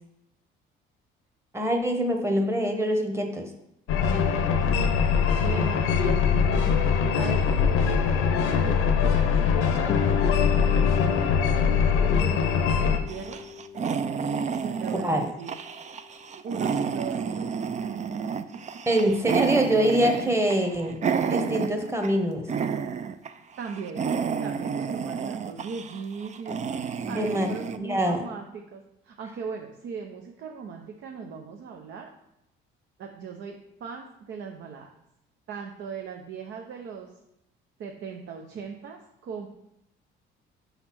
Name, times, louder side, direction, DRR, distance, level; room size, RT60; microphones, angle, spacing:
voice 1, 1.5-3.5 15.0-15.2 18.9-21.0 21.2-22.5 27.0-27.5 27.8-28.2, right 1 dB, 10° right, 4 dB, 1.1 m, -24 dB
sound 1, 3.9-13.0, left 6 dB, 85° left, 0.8 m, -22 dB
voice 2, 5.4-10.1 10.7-13.4 14.5-15.5 16.4-17.6 23.6-24.1 24.4-26.8 27.1-32.1 33.0-34.9 35.5-37.1 37.8-39.5, right 6 dB, 65° right, 2 dB, 0.8 m, -39 dB
Guitar, 9.9-15.2, left 8 dB, 30° left, 0.5 m, -35 dB
sound 2, 13.1-22.2 22.5-23.3 23.6-27.8, right 6 dB, 35° right, 0.4 m, -30 dB
5.3 x 4.1 x 6.0 m, 0.81 s
cardioid pair, 95°, 21 cm